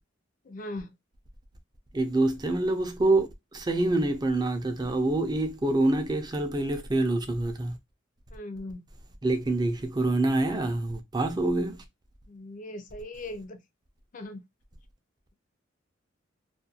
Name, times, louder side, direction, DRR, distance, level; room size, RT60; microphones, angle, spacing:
voice 1, 0.5-0.9 8.3-8.8 12.3-13.6 14.1-14.4, left 1 dB, 40° left, 0.4 m, -39 dB
voice 2, 1.9-7.8 9.2-11.8, right 2 dB, 20° right, 0.4 m, -26 dB
2.4 x 2.2 x 2.7 m
head